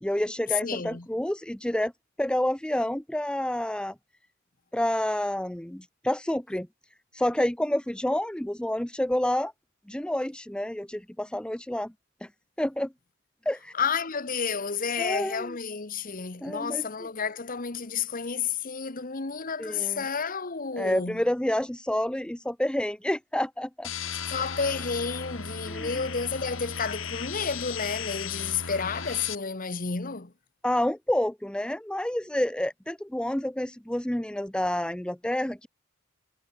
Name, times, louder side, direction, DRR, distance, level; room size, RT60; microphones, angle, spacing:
voice 1, 0.0-1.9 2.2-3.9 4.7-6.7 7.1-9.5 9.9-11.9 12.2-12.3 12.6-12.9 13.5-13.7 14.9-15.6 16.4-16.8 19.6-20.0 20.8-23.9 25.7-26.1 30.6-35.7, left 1 dB, 5° left, 0.6 m, -29 dB
voice 2, 0.6-1.1 13.7-21.2 24.3-30.3, left 5 dB, 40° left, 1.3 m, -31 dB
sound 1, 23.8-29.4, left 6 dB, 65° left, 4.7 m, -36 dB
head